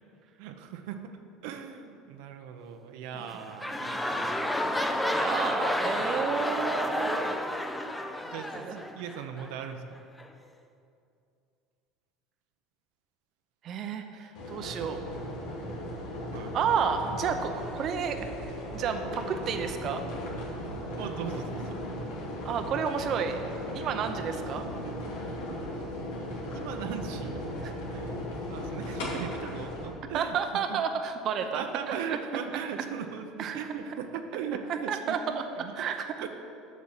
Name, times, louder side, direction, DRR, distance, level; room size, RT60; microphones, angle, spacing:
voice 1, 0.4-1.2 1.4-4.7 5.8-6.0 8.2-10.0 16.3-16.6 20.9-21.8 26.5-27.4 27.9-28.2 28.5-30.8 31.4-35.7 36.2-36.3, right 7 dB, 80° right, 6 dB, 0.7 m, -39 dB
sound 1, 3.1-9.5 10.2-10.3, left 1 dB, 5° left, 0.6 m, -30 dB
voice 2, 5.1-8.0 8.5-8.8 13.6-15.0 16.5-18.3 18.7-20.0 22.4-23.4 23.7-24.7 30.1-32.2 33.4-33.6 34.7-35.4 35.7-36.1, right 7 dB, 45° right, 6 dB, 0.7 m, -31 dB
sound 2, 14.4-29.9, equal, 90° left, 2.6 m, -37 dB
8.1 x 6.3 x 7.3 m, 2.6 s
supercardioid pair, 125°, 0 cm